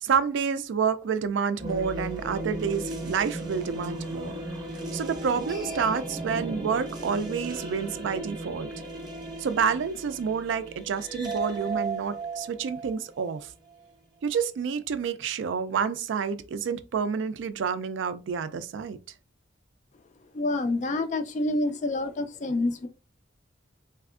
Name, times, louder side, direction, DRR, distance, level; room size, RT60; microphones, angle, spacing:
voice 1, 0.0-4.3 4.9-8.7 9.4-13.5 14.2-19.0, right 6 dB, 75° right, 0.3 m, -29 dB
sound 1, 1.6-13.7, right 2 dB, 20° right, 0.7 m, -35 dB
voice 2, 20.3-22.9, left 2 dB, 40° left, 0.3 m, -27 dB
3.3 x 2.7 x 2.4 m
head